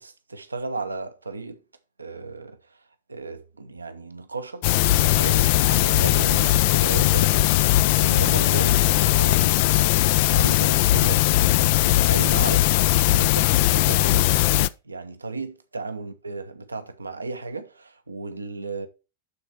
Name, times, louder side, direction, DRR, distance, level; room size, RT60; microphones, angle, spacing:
voice 1, 0.0-1.6 2.0-2.8 3.1-11.2 12.1-12.7 13.2-18.9, right 3 dB, 80° right, 0.8 m, -35 dB
sound 1, 4.6-14.7, left 15 dB, 50° left, 0.3 m, -19 dB
11.5 x 4.1 x 4.5 m
figure-of-eight pair, 90°, 0 cm